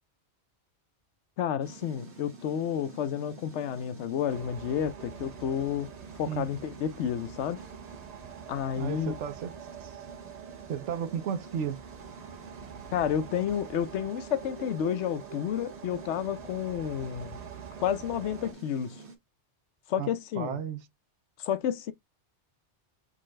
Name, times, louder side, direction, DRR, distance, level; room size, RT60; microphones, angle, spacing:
voice 1, 1.4-5.9 6.2-7.6 8.5-9.1 12.9-17.4 17.8-19.0 19.9-20.6 21.4-21.9, left 9 dB, 80° left, 0.9 m, -30 dB
sound 1, 1.6-19.2, right 3 dB, 70° right, 1.7 m, -49 dB
sound 2, 4.3-18.5, right 9 dB, 50° right, 0.5 m, -46 dB
voice 2, 8.8-9.5 9.8-9.9 10.7-11.8 20.0-20.8, right 8 dB, 85° right, 1.0 m, -34 dB
3.9 x 3.7 x 3.1 m
omnidirectional pair, 1.2 m